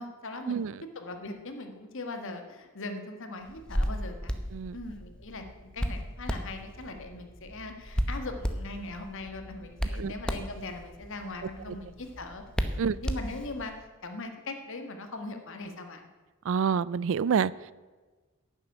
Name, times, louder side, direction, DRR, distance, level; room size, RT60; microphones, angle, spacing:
voice 1, 0.0-4.4 4.7-12.4 12.8-13.7 14.0-16.1, left 2 dB, 65° left, 6 dB, 1.6 m, -40 dB
Hands, 3.5-13.7, equal, 5° left, 0.8 m, -35 dB
voice 2, 16.5-17.5, right 6 dB, 65° right, 21 dB, 0.4 m, -27 dB
11.0 x 7.4 x 8.8 m, 1.3 s
head